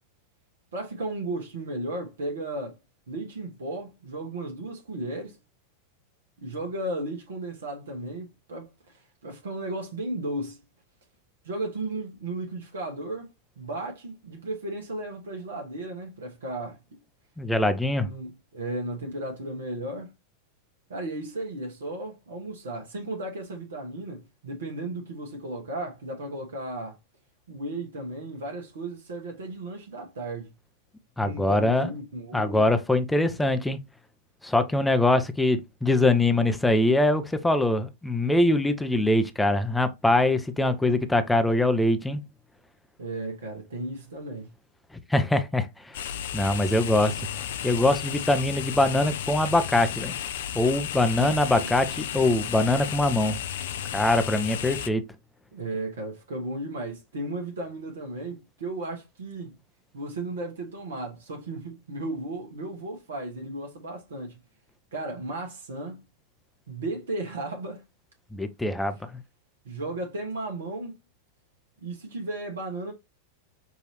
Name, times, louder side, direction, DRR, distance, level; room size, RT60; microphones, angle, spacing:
voice 1, 0.7-2.8 3.1-5.4 6.4-10.6 11.4-13.3 13.6-16.8 18.0-20.1 20.9-27.0 27.5-30.5 31.2-32.7 43.0-44.5 51.2-51.7 55.5-59.5 59.9-64.4 64.9-66.0 66.7-67.8 69.6-70.9 71.8-72.9, right 2 dB, 65° right, 1.1 m, -35 dB
voice 2, 17.4-18.1 31.2-31.9 32.3-33.8 34.4-42.2 45.1-46.0 46.3-47.3 47.6-50.2 50.5-51.9 52.1-53.4 53.9-55.0 68.3-69.0, left 2 dB, 5° left, 0.6 m, -23 dB
sound 1, 45.9-54.9, left 10 dB, 60° left, 0.4 m, -33 dB
6.0 x 2.7 x 3.0 m
figure-of-eight pair, 90°, 0 cm